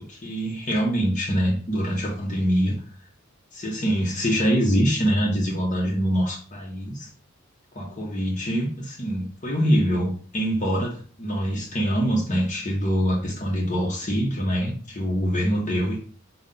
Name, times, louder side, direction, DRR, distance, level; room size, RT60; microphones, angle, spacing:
voice 1, 0.0-2.8 3.5-7.1 7.7-16.0, equal, 35° left, 0.9 m, -24 dB
5.4 x 2.4 x 3.8 m
head